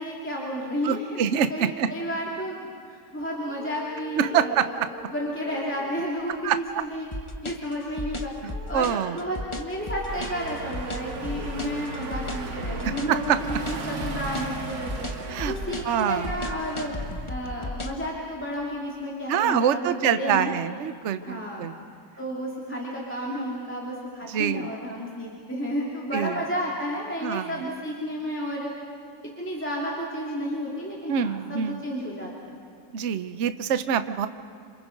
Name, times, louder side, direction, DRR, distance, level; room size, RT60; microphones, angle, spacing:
voice 1, 0.0-1.2 1.5-4.8 5.1-7.1 7.4-8.3 8.7-15.1 15.5-16.9 17.3-20.5 21.2-21.7 22.2-28.7 29.4-32.6, equal, 5° left, -4 dB, 2.7 m, -32 dB
voice 2, 0.8-1.9 4.2-4.9 6.4-6.8 8.4-9.2 13.1-13.4 15.3-15.5 15.8-16.3 19.3-21.8 24.3-24.7 26.1-26.4 27.2-27.5 31.1-31.8 32.9-34.3, right 8 dB, 50° right, 11 dB, 0.9 m, -25 dB
sound 1, 3.2-18.2, equal, 25° right, 2.1 m, -45 dB
sound 2, 7.1-18.0, left 1 dB, 20° left, 0.9 m, -34 dB
sound 3, 10.1-17.3, right 4 dB, 80° right, 2.4 m, -37 dB
27.5 x 27.0 x 5.3 m, 2.4 s
omnidirectional pair, 1.9 m